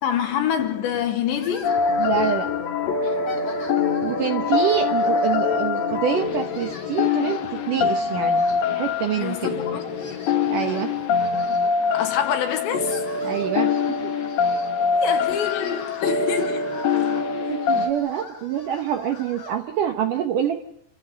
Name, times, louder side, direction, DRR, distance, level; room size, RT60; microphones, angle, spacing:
voice 1, 0.0-1.8 3.5-3.6 9.2-9.9 11.9-13.1 14.8-16.7, left 8 dB, 75° left, 4.3 m, -26 dB
sound 1, 0.5-11.5, right 3 dB, 90° right, 4.1 m, -42 dB
sound 2, 1.4-2.6 3.0-4.5 4.9-5.9 6.2-9.5 9.8-12.1 12.6-19.6, left 4 dB, 35° left, 2.7 m, -43 dB
sound 3, 1.6-17.9, left 5 dB, 60° left, 3.0 m, -24 dB
voice 2, 2.0-2.5 4.0-8.4 8.7-9.6 10.5-10.9 13.2-14.1 17.5-20.6, right 9 dB, 70° right, 2.0 m, -26 dB
28.0 x 14.0 x 9.6 m
omnidirectional pair, 5.1 m